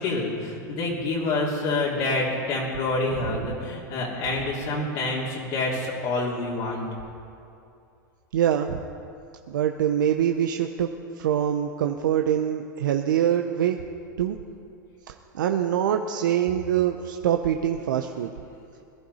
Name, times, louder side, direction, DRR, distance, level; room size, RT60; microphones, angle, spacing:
voice 1, 0.0-6.9, left 2 dB, 55° left, -5 dB, 3.2 m, -27 dB
voice 2, 8.3-8.8 9.5-10.9 11.2-13.8 14.2-14.4 15.1-18.3, right 10 dB, 80° right, 5 dB, 0.7 m, -24 dB
20.5 x 11.5 x 4.2 m, 2.6 s
hypercardioid pair, 105°, 10 cm